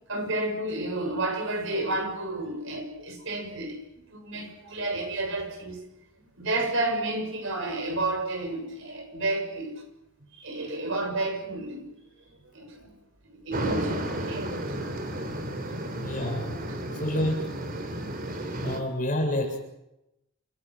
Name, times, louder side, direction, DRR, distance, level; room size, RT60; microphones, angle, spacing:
voice 1, 0.1-3.8 4.1-5.8 6.4-9.8 10.4-11.9 12.5-12.9 13.3-14.5 14.8-15.0 15.3-15.7 16.2-16.3 16.7-17.0, right 2 dB, 60° right, 4 dB, 7.1 m, -31 dB
sound 1, 13.5-18.8, right 1 dB, 40° right, 3.4 m, -33 dB
voice 2, 16.0-16.6 17.0-17.6 18.6-19.6, left 1 dB, 40° left, 3 dB, 7.4 m, -28 dB
29.0 x 20.0 x 7.8 m, 0.90 s
head